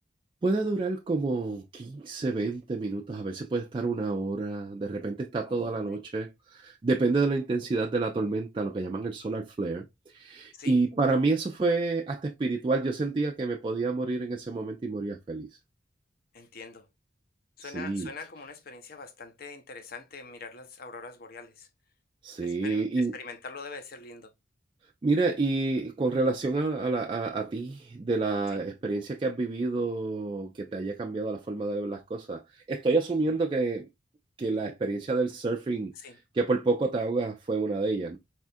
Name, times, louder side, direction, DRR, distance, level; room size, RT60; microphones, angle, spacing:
voice 1, 0.4-15.5 17.6-18.1 22.2-23.1 25.0-33.9 34.4-35.9 36.3-38.2, right 3 dB, 25° right, 0.3 m, -29 dB
voice 2, 5.5-6.0 10.5-10.8 16.3-16.9 17.6-21.7 22.4-24.3 28.5-28.6 36.0-36.2, left 4 dB, 50° left, 0.6 m, -44 dB
4.1 x 2.4 x 2.5 m
head